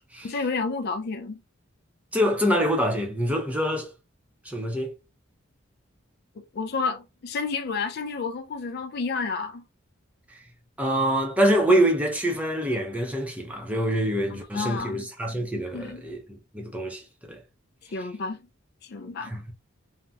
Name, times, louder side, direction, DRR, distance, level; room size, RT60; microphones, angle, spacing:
voice 1, 0.2-1.4 6.5-9.6 14.3-15.1 15.7-16.0 17.9-18.4 18.8-19.3, left 4 dB, 55° left, 0.4 m, -30 dB
voice 2, 2.1-3.9 4.4-4.9 10.8-17.4 19.3-19.5, equal, 5° right, 0.6 m, -25 dB
3.3 x 2.1 x 2.7 m
head